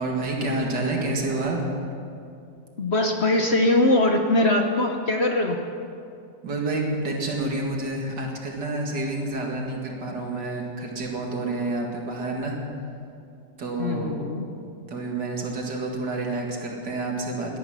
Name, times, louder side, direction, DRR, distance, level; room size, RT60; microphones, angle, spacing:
voice 1, 0.0-1.7 6.4-12.6 13.6-14.2 14.9-17.6, right 2 dB, 70° right, 0 dB, 2.7 m, -28 dB
voice 2, 2.8-5.6 13.8-14.4, left 1 dB, 45° left, 3 dB, 1.0 m, -21 dB
18.0 x 12.5 x 6.1 m, 2.5 s
omnidirectional pair, 1.9 m